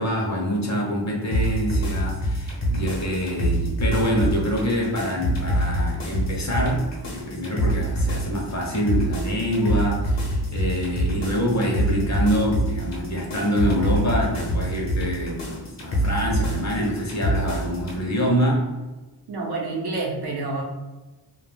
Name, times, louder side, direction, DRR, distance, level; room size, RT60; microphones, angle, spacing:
voice 1, 0.0-18.7, equal, 40° left, -2 dB, 0.6 m, -25 dB
sound 1, 1.3-18.0, right 1 dB, 80° left, 0.8 m, -26 dB
voice 2, 19.3-20.6, right 3 dB, 65° right, -2 dB, 0.7 m, -28 dB
2.2 x 2.1 x 3.2 m, 1.2 s
wide cardioid pair, 135°, 42 cm